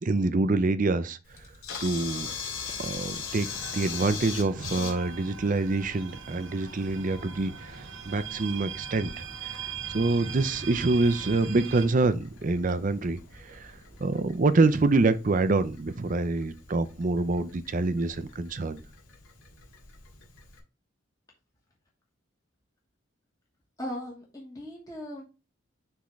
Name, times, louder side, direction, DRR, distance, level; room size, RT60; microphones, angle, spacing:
voice 1, 0.0-1.2 1.8-2.3 2.8-3.5 3.7-9.1 9.4-13.7 14.0-18.8, right 3 dB, 40° right, 0.5 m, -26 dB
Camera, 1.3-20.6, left 5 dB, 85° left, 2.1 m, -42 dB
sound 1, 2.1-14.1, equal, 70° left, 3.2 m, -55 dB
sound 2, 3.4-11.9, right 7 dB, 70° right, 1.2 m, -40 dB
voice 2, 23.8-25.2, equal, 15° left, 1.3 m, -38 dB
10.0 x 3.6 x 3.1 m
head